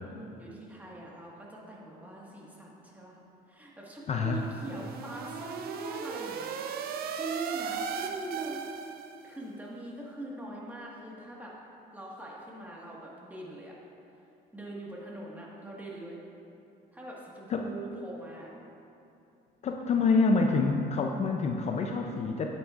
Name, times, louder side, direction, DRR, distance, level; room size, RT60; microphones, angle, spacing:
voice 1, 0.0-3.2 3.5-6.5 6.8-8.8 9.2-11.6 11.9-13.7 14.5-16.2 16.9-18.5, right 2 dB, 10° right, -4 dB, 1.6 m, -42 dB
voice 2, 4.1-4.4 17.5-17.7 19.6-22.5, left 4 dB, 40° left, 3 dB, 0.5 m, -27 dB
sound 1, 4.3-9.3, right 7 dB, 65° right, 0.5 m, -37 dB
9.2 x 8.9 x 2.5 m, 2.7 s
cardioid pair, 110°, 17 cm